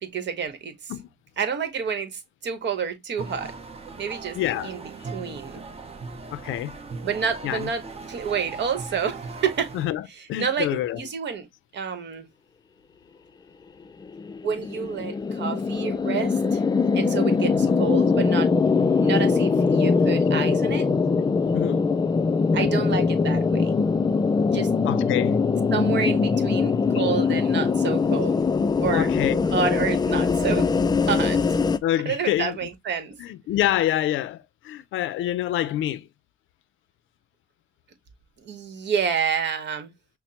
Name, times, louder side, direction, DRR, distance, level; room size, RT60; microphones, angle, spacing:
voice 1, 0.0-0.9 1.4-3.5 4.0-4.4 4.6-4.8 5.1-5.6 7.0-7.8 8.1-9.7 10.4-11.5 11.7-12.3 14.4-16.6 16.9-18.5 19.0-20.9 22.5-23.7 24.5-24.7 25.7-28.4 28.8-29.1 29.5-30.7 31.1-31.4 32.0-33.2 38.4-39.9, right 6 dB, 60° right, 1.1 m, -29 dB
sound 1, 3.2-9.9, right 4 dB, 30° right, 0.9 m, -39 dB
voice 2, 4.3-4.7 5.0-5.1 6.3-6.8 7.4-7.7 9.7-11.0 17.5-17.7 21.5-21.9 24.8-25.4 26.9-27.0 28.9-29.4 31.8-32.6 33.2-36.1, left 12 dB, 80° left, 0.5 m, -27 dB
sound 2, 14.0-31.8, left 4 dB, 20° left, 0.3 m, -22 dB
5.8 x 2.1 x 2.7 m
cardioid pair, 90°, 20 cm